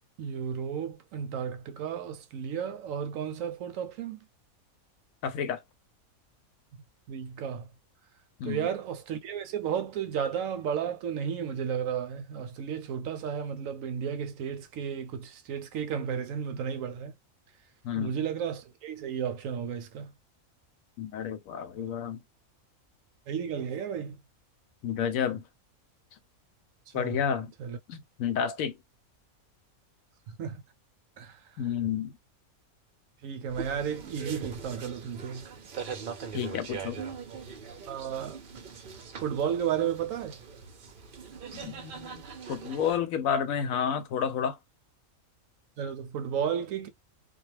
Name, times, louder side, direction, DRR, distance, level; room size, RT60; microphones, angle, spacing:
voice 1, 0.2-4.2 7.1-7.7 8.4-17.1 17.9-20.1 23.3-24.2 26.9-27.2 27.6-27.8 30.4-30.6 31.2-31.7 33.2-35.5 37.9-38.4 39.2-40.4 45.8-46.9, right 8 dB, 70° right, 0.9 m, -33 dB
voice 2, 5.2-5.6 8.4-8.7 17.8-18.1 21.0-22.2 24.8-25.4 26.9-27.5 27.9-28.8 31.6-32.1 36.3-37.0 41.5-42.2 42.5-44.6, left 8 dB, 75° left, 1.0 m, -30 dB
sound 1, 33.5-43.0, right 6 dB, 55° right, 0.6 m, -41 dB
2.3 x 2.2 x 3.1 m
omnidirectional pair, 1.5 m